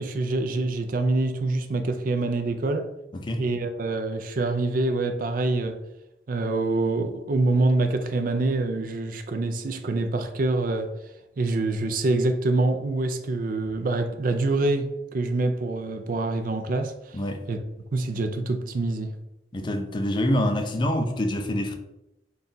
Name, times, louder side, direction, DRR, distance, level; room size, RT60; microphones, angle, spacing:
voice 1, 0.0-2.9 3.4-5.8 6.3-10.9 11.4-17.2 17.5-17.6 17.9-19.1, right 2 dB, 50° right, 0.4 m, -25 dB
voice 2, 3.1-3.4 17.1-17.4 19.5-21.8, left 1 dB, 25° left, 0.4 m, -26 dB
4.0 x 2.3 x 3.8 m
head